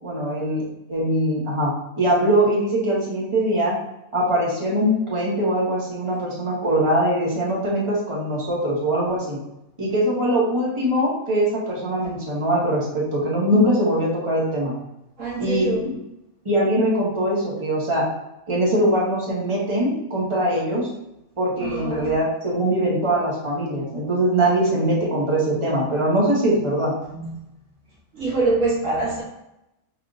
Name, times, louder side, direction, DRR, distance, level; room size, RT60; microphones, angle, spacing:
voice 1, 0.0-3.7 4.1-9.4 9.8-14.7 15.4-15.9 16.4-18.0 18.5-20.9 21.4-26.9, right 1 dB, 20° right, -6 dB, 1.5 m, -22 dB
voice 2, 15.2-15.9 21.6-22.1 27.1-27.3 28.1-29.2, right 3 dB, 65° right, -5 dB, 1.3 m, -24 dB
5.7 x 3.4 x 2.6 m, 0.87 s
omnidirectional pair, 1.5 m